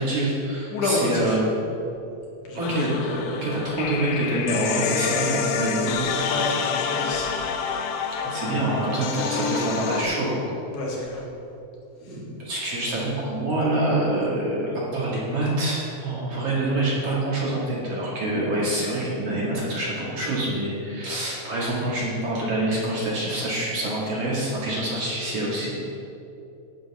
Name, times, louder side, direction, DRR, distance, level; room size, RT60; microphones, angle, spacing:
voice 1, 0.0-1.5 2.5-6.1 8.2-10.5 12.0-25.7, right 1 dB, 40° right, -6 dB, 2.5 m, -26 dB
voice 2, 0.7-1.4 2.5-2.9 6.2-7.3 10.7-11.2 12.0-12.2, left 2 dB, 55° left, -3 dB, 2.2 m, -28 dB
sound 1, 2.6-10.0, left 6 dB, 80° left, 3.0 m, -28 dB
19.5 x 7.5 x 3.8 m, 2.8 s
omnidirectional pair, 5.9 m